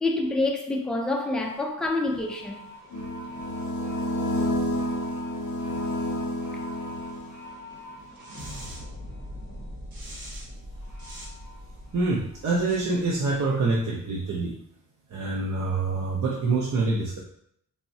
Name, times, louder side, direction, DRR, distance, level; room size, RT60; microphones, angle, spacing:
voice 1, 0.0-2.6, left 2 dB, ahead, 0.3 m, -27 dB
sound 1, 1.4-13.8, equal, 80° right, 0.9 m, -43 dB
sound 2, 2.9-7.6, equal, 75° left, 0.6 m, -29 dB
voice 2, 11.9-14.5 15.1-17.2, right 3 dB, 55° right, 0.5 m, -26 dB
3.5 x 2.0 x 2.6 m
wide cardioid pair, 110°, 35 cm